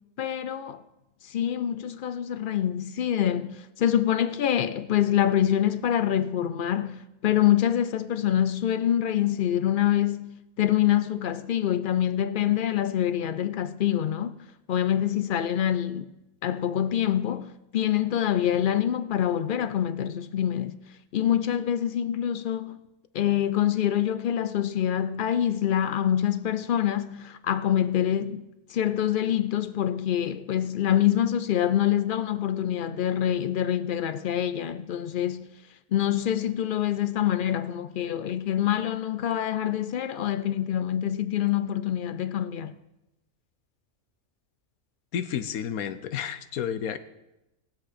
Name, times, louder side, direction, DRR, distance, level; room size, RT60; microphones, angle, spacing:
voice 1, 0.2-0.8 1.2-14.4 14.7-16.1 16.4-20.8 21.1-22.8 23.1-35.5 35.9-42.7, left 10 dB, 70° left, 0.5 m, -25 dB
voice 2, 45.1-47.0, left 8 dB, 90° left, 1.2 m, -31 dB
20.5 x 7.7 x 4.2 m
omnidirectional pair, 1.5 m